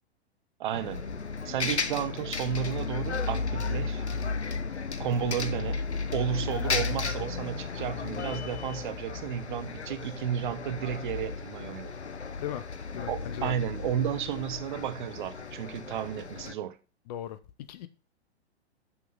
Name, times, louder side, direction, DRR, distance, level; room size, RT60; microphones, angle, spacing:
voice 1, 0.6-1.1 1.4-4.0 5.0-5.8 6.1-12.0 13.1-16.8, right 9 dB, 45° right, 0.8 m, -32 dB
Bus, 0.7-16.5, left 4 dB, 85° left, 0.8 m, -34 dB
voice 2, 12.9-13.5 17.1-17.4 17.7-17.9, left 12 dB, 40° left, 0.8 m, -37 dB
6.1 x 5.8 x 5.4 m
figure-of-eight pair, 105°, 33 cm